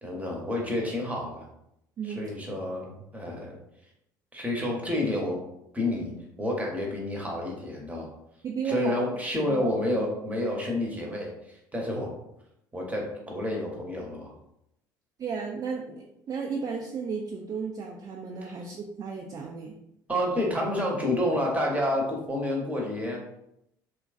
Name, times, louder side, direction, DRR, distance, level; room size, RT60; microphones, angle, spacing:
voice 1, 0.0-1.4 2.0-3.6 4.3-5.4 5.7-8.1 8.6-12.1 12.7-14.3 18.4-18.5 20.1-23.2, left 1 dB, 15° right, -1 dB, 0.9 m, -29 dB
voice 2, 8.4-9.0 9.5-9.7 15.2-19.7, right 5 dB, 35° right, 0 dB, 0.4 m, -34 dB
3.0 x 2.3 x 2.4 m, 0.81 s
figure-of-eight pair, 60°, 11 cm